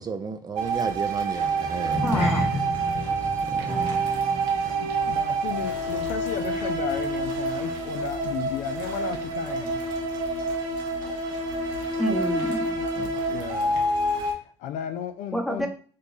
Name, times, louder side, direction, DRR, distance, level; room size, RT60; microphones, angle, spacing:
voice 1, 0.0-2.0 3.5-3.9 13.0-13.1, right 5 dB, 30° right, 7 dB, 0.4 m, -33 dB
sound 1, 0.6-14.3, right 2 dB, 80° right, 1.0 m, -27 dB
sound 2, 1.8-6.4 6.7-7.0 7.5-7.6, left 2 dB, 50° left, 0.8 m, -32 dB
voice 2, 1.8-2.5 12.0-12.8 15.3-15.7, equal, ahead, 2 dB, 0.8 m, -28 dB
sound 3, 3.7-10.4, right 2 dB, 55° right, 0.9 m, -43 dB
voice 3, 4.7-9.8 13.2-13.8 14.4-15.7, left 9 dB, 70° left, 9 dB, 0.4 m, -34 dB
2.9 x 2.2 x 3.9 m, 0.43 s
supercardioid pair, 85°, 13 cm